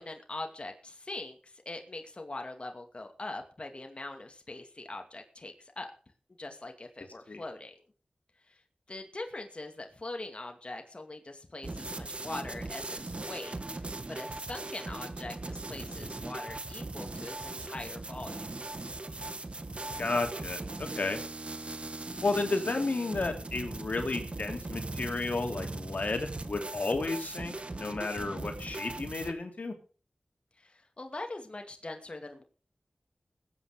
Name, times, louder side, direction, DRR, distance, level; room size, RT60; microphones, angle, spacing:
voice 1, 0.0-5.9 6.4-7.8 8.5-8.6 8.9-13.8 14.1-18.4 30.6-32.4, left 2 dB, 45° left, 4 dB, 2.4 m, -42 dB
sound 1, 11.6-29.3, right 2 dB, 45° right, 1.5 m, -39 dB
voice 2, 20.0-20.6 21.0-21.2 22.2-29.7, left 3 dB, 70° left, 5 dB, 2.8 m, -32 dB
20.5 x 8.6 x 5.0 m, 0.39 s
wide cardioid pair, 65°, 3 cm